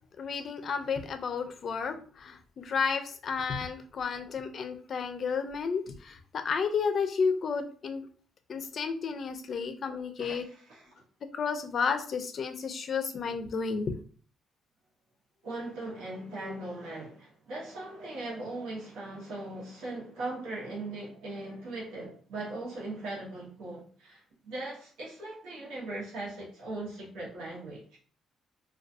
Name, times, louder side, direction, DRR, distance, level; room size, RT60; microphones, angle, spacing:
voice 1, 0.2-8.1 8.5-10.4 11.2-13.9, left 5 dB, 50° left, 0.4 m, -32 dB
voice 2, 10.2-10.9 15.4-28.0, right 2 dB, 90° right, 0.8 m, -39 dB
2.4 x 2.2 x 2.6 m
cardioid pair, 115°, 0 cm